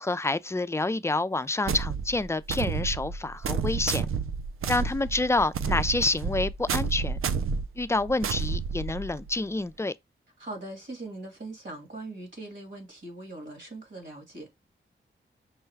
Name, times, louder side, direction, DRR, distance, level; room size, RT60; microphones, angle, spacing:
voice 1, 0.0-4.1 4.7-7.2 7.8-9.9, left 2 dB, 15° left, 0.3 m, -28 dB
sound 1, 1.7-9.3, right 5 dB, 80° right, 0.4 m, -30 dB
voice 2, 10.4-14.5, right 2 dB, 60° right, 2.1 m, -41 dB
5.5 x 2.2 x 3.3 m
cardioid pair, 45°, 21 cm